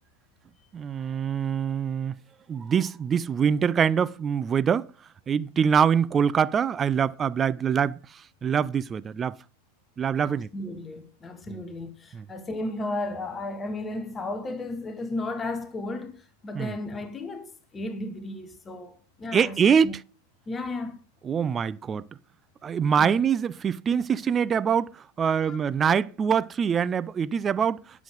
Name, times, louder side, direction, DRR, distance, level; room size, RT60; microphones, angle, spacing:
voice 1, 0.7-2.1 2.5-4.9 5.3-8.0 8.4-9.4 10.0-10.5 11.5-11.6 12.1-12.2 16.5-16.8 19.3-20.0 21.2-22.1 22.6-24.9 25.2-27.8, right 7 dB, 20° right, 0.4 m, -24 dB
voice 2, 10.2-19.6 19.8-19.9 20.5-21.0 23.0-23.2 25.3-25.6, left 2 dB, 15° left, 1.3 m, -34 dB
11.5 x 7.1 x 5.2 m
figure-of-eight pair, 90°, 0 cm